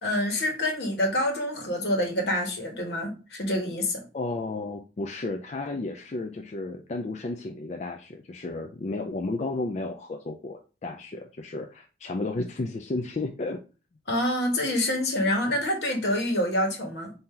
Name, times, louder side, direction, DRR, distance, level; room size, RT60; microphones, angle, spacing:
voice 1, 0.0-4.0 14.1-17.1, left 1 dB, 75° left, 2 dB, 1.4 m, -27 dB
voice 2, 4.1-13.6, left 2 dB, 40° left, 4 dB, 0.4 m, -33 dB
4.3 x 2.7 x 3.7 m, 0.33 s
head